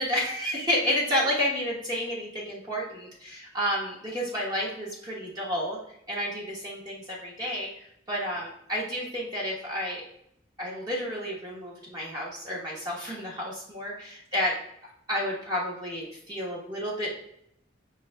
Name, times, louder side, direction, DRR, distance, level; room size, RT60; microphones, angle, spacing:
voice 1, 0.0-5.8 6.1-10.0 10.6-14.5 14.8-17.1, equal, 20° right, -5 dB, 1.2 m, -31 dB
5.0 x 3.1 x 3.4 m, 0.73 s
head